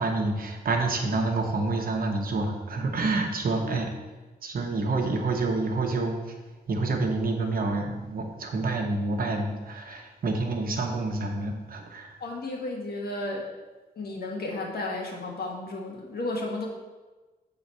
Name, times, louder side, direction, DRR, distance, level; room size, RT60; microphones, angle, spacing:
voice 1, 0.0-3.9 4.4-6.3 6.7-12.1, right 3 dB, 60° right, 3 dB, 1.0 m, -28 dB
voice 2, 12.2-13.5 13.9-16.7, left 2 dB, 70° left, -1 dB, 1.5 m, -33 dB
7.6 x 3.9 x 5.5 m, 1.2 s
wide cardioid pair, 135°, 17 cm